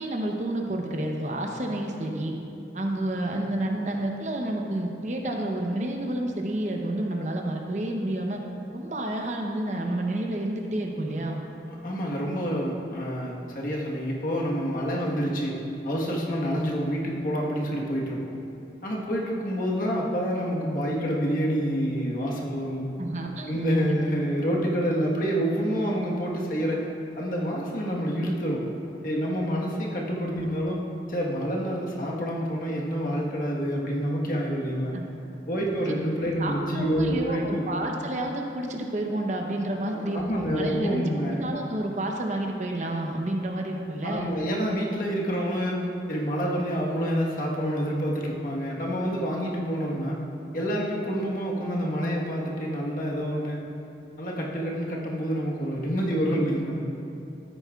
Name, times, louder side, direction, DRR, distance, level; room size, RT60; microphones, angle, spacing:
voice 1, 0.0-2.3 2.7-8.4 8.7-11.4 23.0-23.6 30.3-30.5 34.9-35.1 36.4-44.3, right 1 dB, 40° right, 2 dB, 0.8 m, -30 dB
voice 2, 11.8-18.3 18.8-22.9 23.5-26.8 27.2-28.7 29.0-30.8 31.1-35.0 35.5-37.8 39.8-41.4 44.0-50.2 50.5-53.6 54.2-56.8, equal, 50° left, -3 dB, 1.3 m, -27 dB
13.5 x 9.6 x 2.4 m, 2.7 s
head